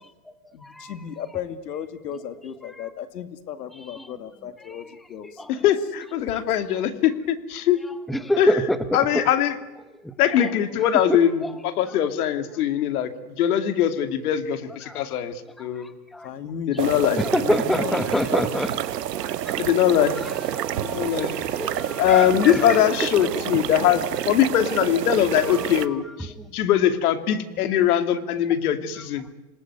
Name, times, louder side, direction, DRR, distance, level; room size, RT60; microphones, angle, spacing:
voice 1, 0.5-5.7 16.2-18.8, left 8 dB, 85° left, 10 dB, 2.4 m, -35 dB
voice 2, 5.5-7.8 8.4-8.7 8.9-9.6 10.2-13.1 13.4-15.3 15.6-15.9 16.7-17.2 19.6-20.2 20.7-21.3 22.0-29.2, left 10 dB, 70° left, 8 dB, 2.8 m, -21 dB
voice 3, 8.1-8.8 11.1-11.5 14.8-15.0 16.1-16.2 17.2-18.9 19.1-19.6 20.5-22.8, equal, ahead, 11 dB, 1.0 m, -26 dB
sound 1, 16.8-25.9, right 11 dB, 85° right, 1.3 m, -29 dB
27.5 x 19.5 x 9.7 m, 1.1 s
hypercardioid pair, 135°, 47 cm